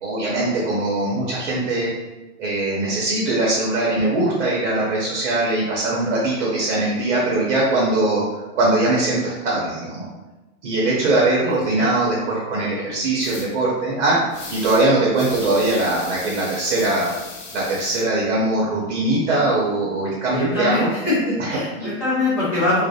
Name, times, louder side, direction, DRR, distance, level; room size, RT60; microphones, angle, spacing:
voice 1, 0.0-1.9 2.4-8.2 8.5-10.1 10.6-17.1 17.5-20.9 21.4-21.9, right 2 dB, 50° right, -5 dB, 0.6 m, -21 dB
voice 2, 11.4-11.9 20.3-22.8, left 2 dB, 30° left, -12 dB, 0.5 m, -23 dB
sound 1, 13.2-13.5 14.3-14.8 15.1-18.0, left 3 dB, 90° left, 0.8 m, -37 dB
2.3 x 2.0 x 2.6 m, 1.1 s
supercardioid pair, 175°, 45 cm